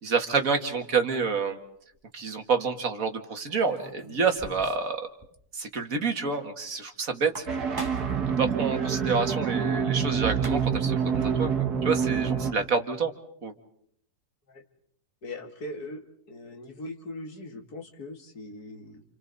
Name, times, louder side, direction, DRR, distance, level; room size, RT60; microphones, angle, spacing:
voice 1, 0.0-1.6 2.1-5.0 5.5-7.5 8.4-11.5 11.8-13.1 13.4-13.5, right 5 dB, 60° right, 5 dB, 2.2 m, -28 dB
sound 1, 1.7-2.0 3.5-4.9 5.2-5.3 5.6-5.7 7.1-8.2 10.0-10.1 10.3-10.9, right 1 dB, 15° right, 2.4 m, -42 dB
sound 2, 7.5-12.5, right 7 dB, 85° right, 2.2 m, -26 dB
voice 2, 15.2-19.0, left 1 dB, 75° left, 4 dB, 2.6 m, -40 dB
29.0 x 29.0 x 4.1 m, 0.71 s
omnidirectional pair, 1.6 m